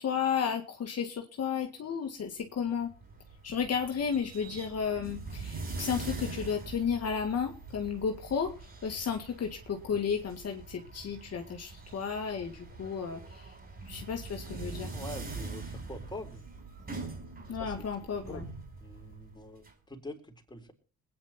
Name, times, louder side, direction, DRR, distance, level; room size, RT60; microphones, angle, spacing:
voice 1, 0.0-2.9 3.4-8.5 8.8-13.5 13.9-14.9 17.5-18.5, left 7 dB, 55° left, 4 dB, 2.0 m, -33 dB
sound 1, 2.7-19.7, right 3 dB, 30° right, 5.1 m, -43 dB
voice 2, 14.9-16.4 17.6-17.9 18.3-18.5 18.8-20.7, left 1 dB, 15° left, 3 dB, 3.9 m, -44 dB
20.5 x 9.8 x 4.4 m, 0.35 s
cardioid pair, 90°, 30 cm